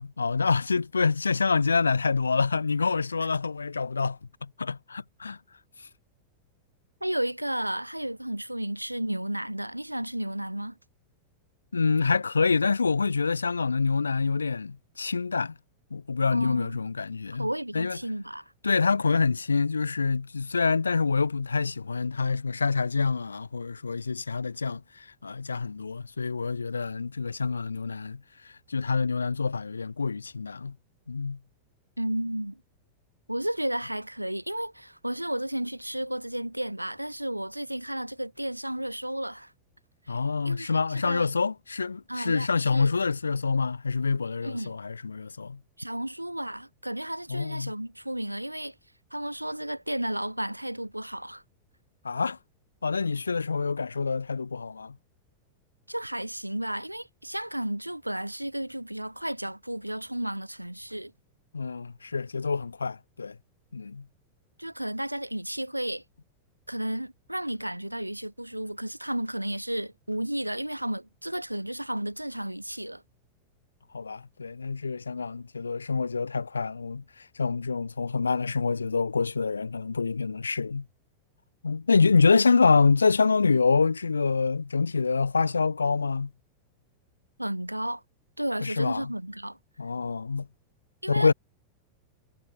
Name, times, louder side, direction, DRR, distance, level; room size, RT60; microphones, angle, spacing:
voice 1, 0.0-5.4 11.7-15.6 15.9-17.5 17.7-18.0 18.6-30.8 31.1-31.4 40.1-45.6 47.3-47.7 52.0-52.4 52.8-55.0 61.5-63.4 63.7-64.1 73.9-80.8 81.6-86.3 88.6-89.1 89.8-90.5 91.1-91.3, left 4 dB, 75° left, 1.5 m, -26 dB
voice 2, 7.0-10.8 16.3-16.8 17.4-18.5 32.0-32.6 33.3-39.5 40.1-40.2 40.4-41.3 42.1-42.9 44.4-44.8 45.8-48.7 49.1-51.4 55.9-61.1 64.6-66.0 66.7-73.0 87.4-88.0 88.4-89.6 91.0-91.3, right 1 dB, 90° right, 1.4 m, -33 dB
figure-of-eight pair, 90°, 0 cm